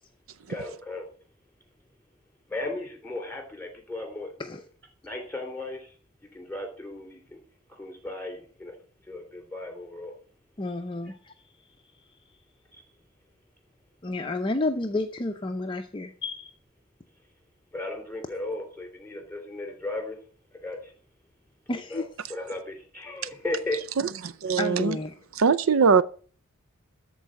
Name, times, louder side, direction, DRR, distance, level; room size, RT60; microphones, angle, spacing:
voice 1, 0.5-1.0 2.5-4.6 5.0-6.0 6.2-7.4 7.7-8.7 9.1-10.1 11.1-11.2 12.7-12.8 17.7-20.2 20.5-20.9 21.9-22.0 22.3-23.8 24.5-24.6, left 2 dB, 5° left, 3.4 m, -36 dB
voice 2, 10.6-11.3 14.0-16.5 21.7-22.0 24.6-25.1, left 2 dB, 25° left, 0.6 m, -30 dB
voice 3, 24.4-25.0 25.4-26.0, right 5 dB, 70° right, 0.5 m, -20 dB
13.5 x 4.6 x 7.4 m
head